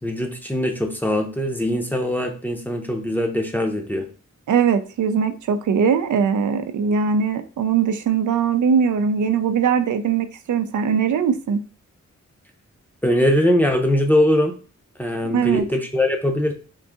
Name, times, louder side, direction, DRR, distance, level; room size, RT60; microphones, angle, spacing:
voice 1, 0.0-4.1 13.0-14.5 15.0-16.5, left 1 dB, 5° left, 0.6 m, -21 dB
voice 2, 4.5-11.6 15.3-15.7, right 6 dB, 90° right, 0.5 m, -20 dB
3.8 x 2.6 x 3.5 m
wide cardioid pair, 140°, 29 cm